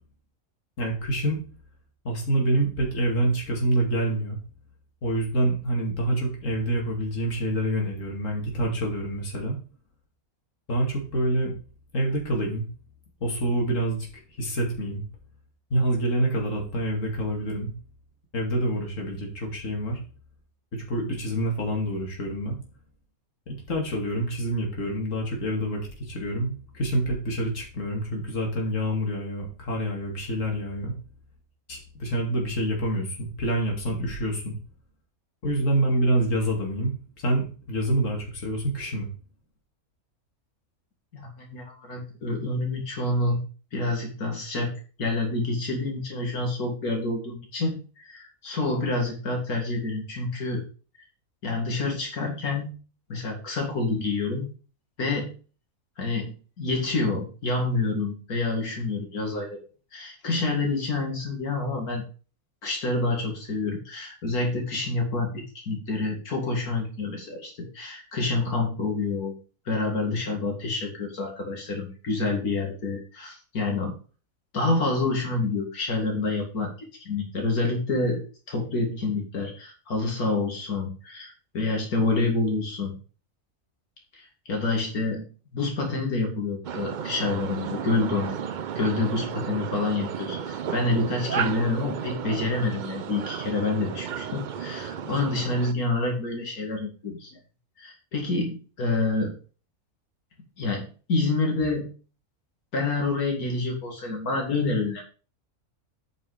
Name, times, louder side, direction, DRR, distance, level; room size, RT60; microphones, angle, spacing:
voice 1, 0.8-1.4 2.0-4.4 5.0-9.6 10.7-11.5 11.9-12.6 13.2-14.1 14.4-15.0 15.7-17.7 18.3-20.0 20.7-22.6 23.5-30.9 31.7-34.5 35.4-39.1, right 1 dB, 60° left, 0 dB, 2.7 m, -27 dB
voice 2, 41.1-43.4 43.7-50.6 51.4-52.7 53.1-54.5 55.0-55.3 56.0-59.6 59.9-62.0 62.6-65.3 65.5-69.3 69.7-73.9 74.5-76.7 77.0-78.2 78.5-82.9 84.1-88.4 88.8-97.4 97.8-99.3 100.6-101.9 102.7-105.0, left 3 dB, 90° left, 1 dB, 2.7 m, -28 dB
sound 1, 86.6-95.7, right 8 dB, 85° right, 0.4 m, -33 dB
8.8 x 5.3 x 5.0 m, 0.36 s
omnidirectional pair, 1.5 m